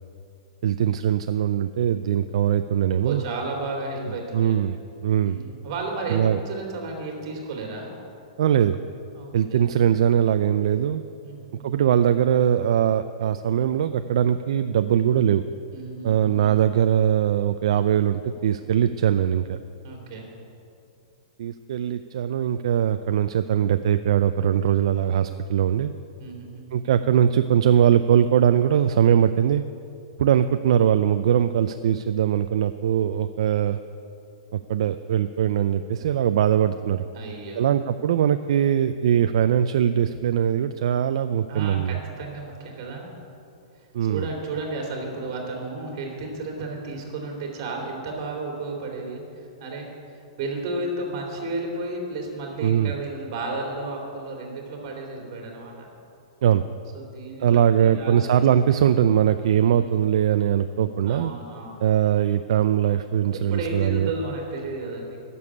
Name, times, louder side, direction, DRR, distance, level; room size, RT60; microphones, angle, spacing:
voice 1, 0.6-3.2 4.3-4.8 5.0-5.4 6.1-6.4 8.4-8.8 9.3-11.0 11.6-15.4 16.0-19.6 21.4-25.9 26.7-29.6 30.2-33.8 34.5-37.0 37.5-42.0 43.9-44.3 52.6-52.9 56.4-56.6 57.4-61.3 61.8-64.1, right 9 dB, 60° right, 10 dB, 0.4 m, -21 dB
voice 2, 2.9-4.6 5.2-7.9 9.1-9.6 11.2-11.7 15.7-16.5 19.8-20.3 26.2-26.7 37.1-37.7 41.5-43.1 43.8-49.9 50.4-55.9 56.9-58.2 59.6-60.0 61.0-61.8 63.3-65.2, right 3 dB, 40° right, 1 dB, 2.7 m, -33 dB
11.0 x 6.9 x 9.6 m, 2.6 s
hypercardioid pair, 170°, 3 cm